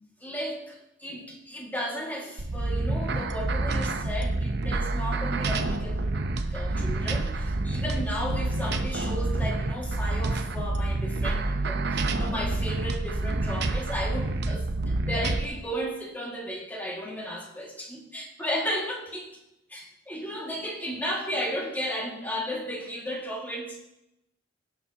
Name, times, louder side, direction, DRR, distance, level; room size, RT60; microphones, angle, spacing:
voice 1, 0.2-19.3 19.7-23.8, equal, 10° left, -2 dB, 2.1 m, -34 dB
sound 1, 2.4-15.5, right 2 dB, 60° right, 0.8 m, -28 dB
18.0 x 7.3 x 2.9 m, 0.85 s
head